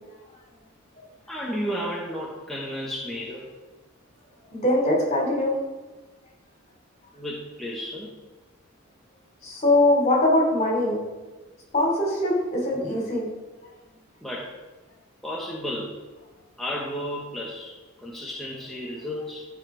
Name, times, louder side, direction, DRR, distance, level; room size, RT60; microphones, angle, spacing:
voice 1, 1.3-3.4 7.1-8.1 14.2-14.5 15.2-16.0 16.6-19.5, equal, ahead, -5 dB, 1.1 m, -33 dB
voice 2, 4.5-5.5 9.4-11.0 11.7-13.3, left 1 dB, 35° left, -3 dB, 3.1 m, -22 dB
14.0 x 4.8 x 3.9 m, 1.2 s
head